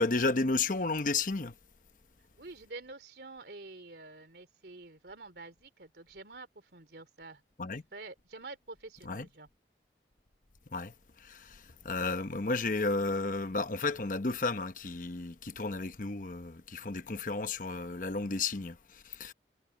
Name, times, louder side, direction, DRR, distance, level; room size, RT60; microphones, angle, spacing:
voice 1, 0.0-1.5 7.6-7.8 9.0-9.3 10.7-19.3, left 3 dB, 50° left, 1.0 m, -33 dB
voice 2, 2.4-7.4 7.9-9.5, right 3 dB, 65° right, 3.2 m, -48 dB
head